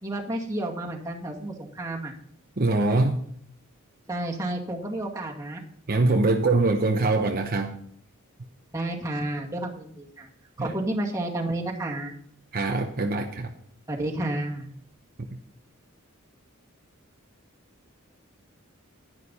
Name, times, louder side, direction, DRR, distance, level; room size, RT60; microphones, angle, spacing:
voice 1, 0.0-2.1 4.1-5.6 8.7-10.3 10.6-12.1 13.9-14.7, right 1 dB, 15° right, -1 dB, 2.2 m, -31 dB
voice 2, 2.6-3.2 5.9-7.8 10.6-10.7 12.5-13.5 15.3-15.4, right 2 dB, 45° right, 3 dB, 0.9 m, -23 dB
11.5 x 11.0 x 4.2 m, 0.63 s
head